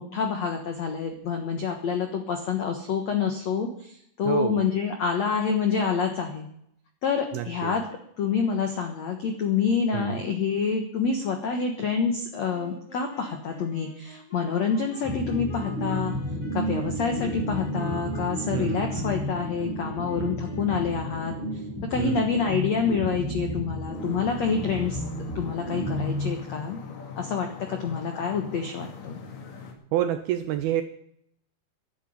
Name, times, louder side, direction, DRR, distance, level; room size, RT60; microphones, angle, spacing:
voice 1, 0.0-6.5 7.0-7.8 8.2-16.1 16.5-21.3 21.8-25.0 25.3-26.8 27.2-29.2, left 6 dB, 75° left, 4 dB, 1.6 m, -27 dB
voice 2, 4.3-4.6 7.3-7.7 9.9-10.2 18.5-18.9 22.0-22.2 29.9-30.8, right 12 dB, 85° right, 9 dB, 2.1 m, -28 dB
sound 1, 12.5-21.7, left 1 dB, 30° left, 1.4 m, -47 dB
sound 2, 15.0-26.9, equal, 5° right, 5.0 m, -32 dB
sound 3, 23.9-29.7, left 6 dB, 55° left, 3.3 m, -41 dB
11.5 x 10.5 x 8.6 m, 0.70 s
omnidirectional pair, 5.3 m